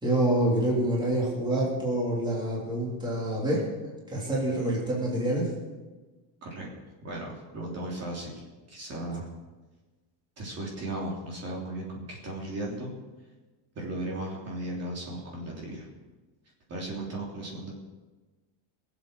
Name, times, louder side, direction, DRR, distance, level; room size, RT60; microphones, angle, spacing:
voice 1, 0.0-3.6 4.1-5.5, right 1 dB, 10° right, -5 dB, 3.4 m, -27 dB
voice 2, 7.0-8.4 8.7-9.3 10.4-12.9 13.7-15.9 16.7-17.7, right 1 dB, 30° right, -3 dB, 3.3 m, -36 dB
21.5 x 8.1 x 6.4 m, 1.2 s
cardioid pair, 165°, 48 cm